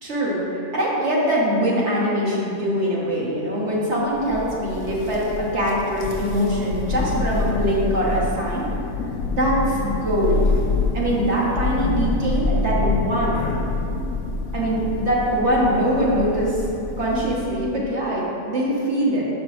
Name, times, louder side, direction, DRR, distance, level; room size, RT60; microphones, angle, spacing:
voice 1, 0.0-8.6 9.3-10.6 10.9-13.4 14.5-16.6 17.0-19.3, equal, 55° right, -5 dB, 1.6 m, -23 dB
Thunder, 4.1-17.7, left 3 dB, 85° left, 1.1 m, -26 dB
5.6 x 5.1 x 6.1 m, 2.8 s
omnidirectional pair, 1.5 m